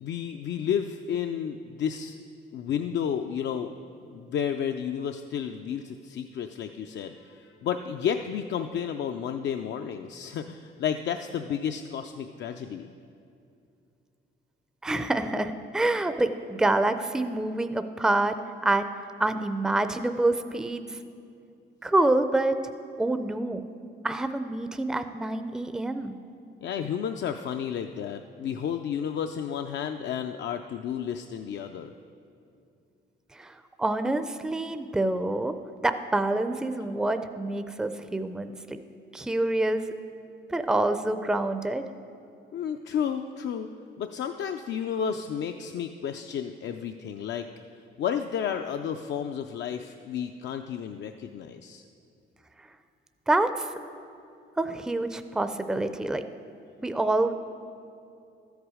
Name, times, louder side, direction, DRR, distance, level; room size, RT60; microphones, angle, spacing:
voice 1, 0.0-2.2 2.5-3.7 4.1-12.9 26.6-31.9 42.5-43.7 44.0-47.5 48.0-51.8, left 8 dB, 65° left, 6 dB, 0.5 m, -32 dB
voice 2, 14.8-18.3 18.6-18.9 19.2-21.0 21.8-22.5 23.0-23.6 24.0-26.2 33.3-35.5 35.8-38.8 39.1-39.9 40.5-41.9 52.6-52.7 53.3-53.7 54.6-56.2 56.8-57.3, right 2 dB, 5° right, 9 dB, 0.4 m, -27 dB
13.0 x 8.1 x 4.9 m, 2.6 s
cardioid pair, 90°, 20 cm